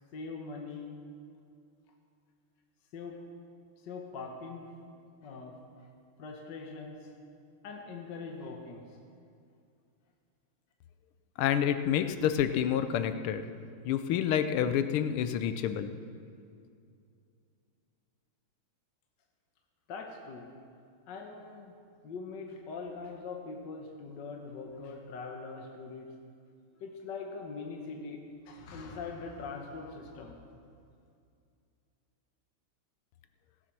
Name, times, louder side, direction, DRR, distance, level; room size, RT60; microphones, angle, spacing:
voice 1, 0.1-1.0 2.9-3.3 3.8-4.8 5.2-5.9 6.2-7.2 7.6-9.0 19.9-20.5 21.1-21.8 22.0-26.1 26.8-30.4, left 4 dB, 60° left, 2 dB, 1.6 m, -42 dB
voice 2, 11.4-13.4 13.8-15.9, left 9 dB, 80° left, 10 dB, 1.5 m, -28 dB
16.5 x 8.4 x 6.0 m, 2.4 s
omnidirectional pair, 2.4 m